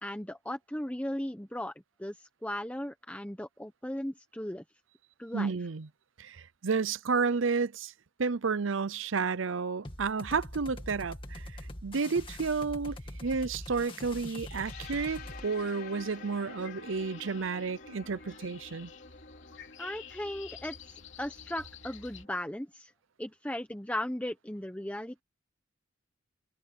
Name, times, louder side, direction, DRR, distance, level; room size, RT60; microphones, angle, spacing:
voice 1, 0.0-1.7 2.0-4.6 5.2-5.5 19.8-22.9 23.2-25.2, left 1 dB, 5° left, 1.0 m, -37 dB
voice 2, 5.3-5.9 6.2-7.9 8.2-18.9, right 5 dB, 75° right, 0.7 m, -31 dB
sound 1, 9.8-15.5, left 1 dB, 25° left, 2.2 m, -43 dB
sound 2, 13.2-22.3, left 8 dB, 65° left, 3.5 m, -52 dB
sound 3, 14.6-22.5, left 4 dB, 50° left, 4.8 m, -50 dB
open air
head